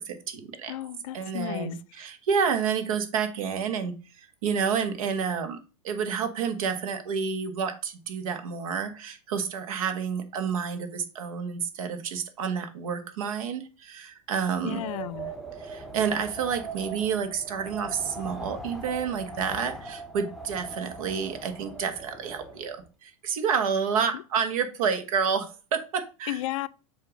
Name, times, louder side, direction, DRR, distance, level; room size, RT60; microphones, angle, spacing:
voice 1, 0.0-0.7 1.1-5.6 5.8-14.8 15.6-26.4, right 6 dB, 75° right, 1.5 m, -29 dB
voice 2, 0.7-2.0 14.6-15.3 24.1-24.2 26.3-26.7, left 14 dB, 70° left, 0.5 m, -34 dB
Wind, 14.5-22.9, right 3 dB, ahead, 0.7 m, -40 dB
7.5 x 2.9 x 5.1 m
supercardioid pair, 145°, 18 cm